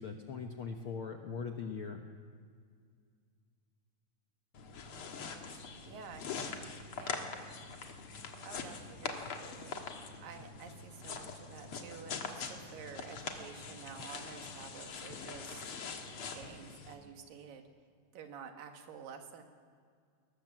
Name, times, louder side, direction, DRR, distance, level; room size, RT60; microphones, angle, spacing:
voice 1, 0.0-2.0, left 5 dB, 70° left, 4 dB, 1.2 m, -40 dB
sound 1, 4.5-17.0, left 5 dB, 50° left, 2.0 m, -43 dB
voice 2, 5.5-6.2 7.0-7.3 8.4-9.8 10.2-15.8 16.3-17.6 18.1-19.4, right 6 dB, 90° right, 5 dB, 3.3 m, -50 dB
20.0 x 18.5 x 7.5 m, 2.1 s
omnidirectional pair, 3.9 m